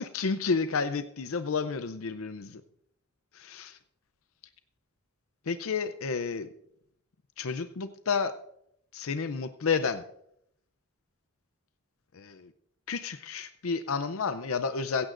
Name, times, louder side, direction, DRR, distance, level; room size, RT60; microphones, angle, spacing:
voice 1, 0.0-2.6 3.3-3.8 5.5-6.5 7.4-8.3 8.9-10.0 12.1-12.5 12.9-15.1, left 5 dB, 70° left, 11 dB, 0.6 m, -31 dB
16.5 x 15.5 x 2.5 m, 0.73 s
head